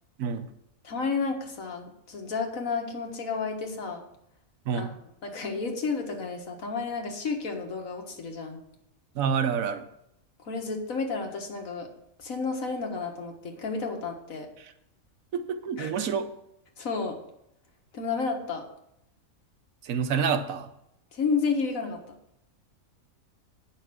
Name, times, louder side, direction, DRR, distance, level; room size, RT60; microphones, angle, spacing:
voice 1, 0.8-4.1 4.7-4.9 5.2-8.6 10.4-11.9 12.2-14.5 15.8-16.1 16.8-17.2 17.9-18.6 21.1-22.0, left 4 dB, 90° left, 3 dB, 1.9 m, -31 dB
voice 2, 4.7-5.0 9.1-9.9 14.6-14.7 15.3-16.3 19.8-20.7, right 6 dB, 85° right, 10 dB, 1.3 m, -28 dB
9.3 x 5.9 x 6.1 m, 0.78 s
omnidirectional pair, 1.4 m